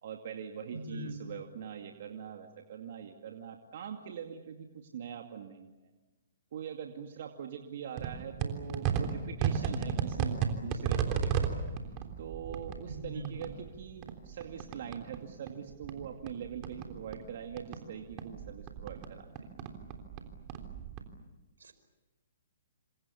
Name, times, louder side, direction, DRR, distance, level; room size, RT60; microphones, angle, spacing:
voice 1, 0.0-5.9 6.5-11.6 12.2-19.3, right 8 dB, 55° right, 3 dB, 2.4 m, -43 dB
voice 2, 0.7-1.2 12.9-13.4 21.6-21.7, right 1 dB, 85° right, 10 dB, 5.0 m, -40 dB
sound 1, 8.0-15.2 15.5-17.8 18.1-21.0, right 7 dB, 35° right, 3.5 m, -34 dB
28.0 x 26.5 x 7.2 m, 1.1 s
hypercardioid pair, 135°, 0 cm